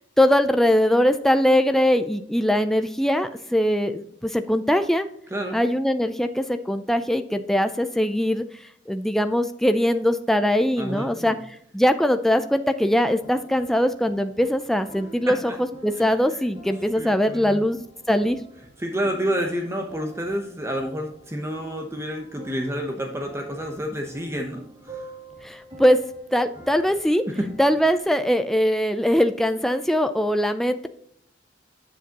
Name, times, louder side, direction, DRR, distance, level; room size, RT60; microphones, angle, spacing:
voice 1, 0.2-5.1 5.5-8.4 8.9-11.4 11.7-15.4 15.8-18.4 25.4-26.0 26.3-27.2 27.6-30.9, equal, ahead, 8 dB, 0.4 m, -21 dB
voice 2, 10.7-11.4 15.3-15.6 16.0-16.1 17.0-17.6 18.8-25.1 27.3-27.5, equal, 15° right, 3 dB, 0.8 m, -29 dB
sound 1, 12.8-28.0, right 1 dB, 35° right, 2.7 m, -47 dB
8.1 x 7.2 x 2.9 m, 0.68 s
head